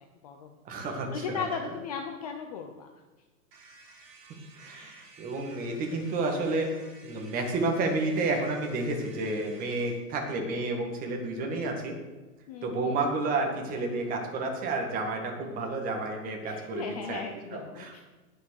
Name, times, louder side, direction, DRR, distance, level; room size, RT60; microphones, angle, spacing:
voice 1, 0.0-2.9 4.7-5.1 12.5-13.0 16.5-18.0, left 6 dB, 25° left, 4 dB, 0.7 m, -38 dB
voice 2, 0.6-1.4 4.6-6.7 7.0-12.0 12.6-17.2 17.5-18.0, right 2 dB, 20° right, 2 dB, 1.9 m, -30 dB
sound 1, 3.5-10.0, right 4 dB, 35° right, 4.6 m, -53 dB
19.0 x 6.4 x 6.4 m, 1.2 s
hypercardioid pair, 160°, 47 cm